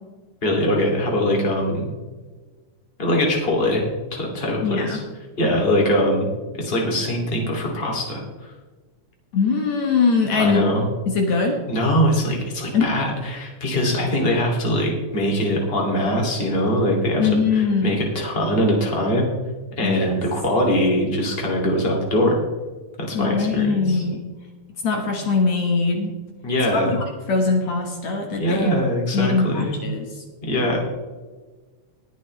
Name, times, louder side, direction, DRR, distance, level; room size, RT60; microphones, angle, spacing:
voice 1, 0.4-1.9 3.0-3.8 4.1-5.0 5.4-8.2 10.3-10.9 11.7-19.3 19.8-22.4 23.1-24.0 26.4-27.0 28.4-29.8 30.5-30.8, equal, 20° left, -1 dB, 2.4 m, -22 dB
voice 2, 4.6-5.0 9.3-10.6 11.1-11.6 12.7-13.0 17.2-18.0 19.8-20.1 23.1-24.2 24.8-26.1 26.7-28.7 29.1-30.2, left 4 dB, 65° left, 2 dB, 2.5 m, -22 dB
20.5 x 7.4 x 3.2 m, 1.3 s
omnidirectional pair, 3.5 m